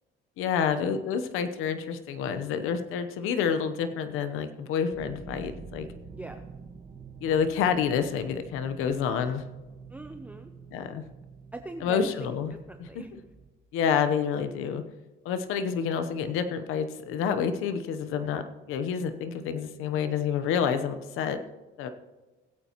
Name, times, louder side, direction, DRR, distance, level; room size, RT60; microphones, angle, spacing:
voice 1, 0.4-5.9 7.2-9.4 10.7-11.0 11.8-12.5 12.8-13.2 13.7-14.8 15.2-21.4 21.8-21.9, left 7 dB, 80° left, 9 dB, 0.9 m, -28 dB
sound 1, 4.9-13.5, right 5 dB, 40° right, 1.6 m, -47 dB
voice 2, 6.1-6.4 9.9-10.5 11.5-12.3 12.7-13.1, right 2 dB, 5° right, 6 dB, 0.6 m, -41 dB
20.0 x 8.4 x 3.0 m, 1.2 s
cardioid pair, 125°, 21 cm